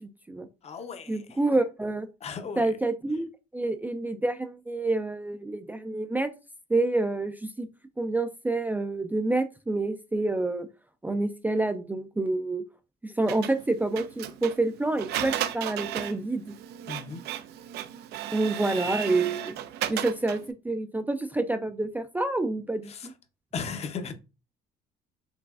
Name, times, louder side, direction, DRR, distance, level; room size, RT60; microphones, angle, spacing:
voice 1, 0.0-0.5 1.1-2.1 2.6-3.3 3.5-6.3 6.7-7.7 8.0-10.7 11.0-12.6 13.0-16.5 18.3-19.6 19.9-20.4 20.6-23.1, right 2 dB, 10° right, 0.3 m, -28 dB
voice 2, 0.6-1.4 2.2-2.8 16.9-17.2 22.9-23.1 23.5-24.1, left 5 dB, 40° left, 0.7 m, -36 dB
Printer, 13.3-20.5, right 11 dB, 75° right, 0.4 m, -35 dB
4.7 x 3.1 x 2.4 m
cardioid pair, 110°, 17 cm